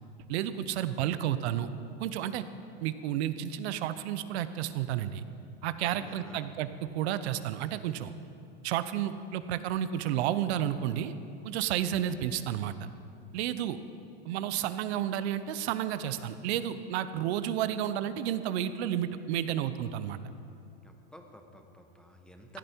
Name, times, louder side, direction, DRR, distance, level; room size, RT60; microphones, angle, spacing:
voice 1, 0.3-1.7 2.0-2.4 2.8-5.2 5.6-8.1 8.6-11.1 11.4-12.7 13.3-13.8 14.3-20.2, right 11 dB, 70° right, 13 dB, 0.8 m, -31 dB
voice 2, 5.8-6.5 20.8-22.6, left 1 dB, 5° left, 4 dB, 1.0 m, -52 dB
15.5 x 11.0 x 4.5 m, 2.7 s
supercardioid pair, 130°, 33 cm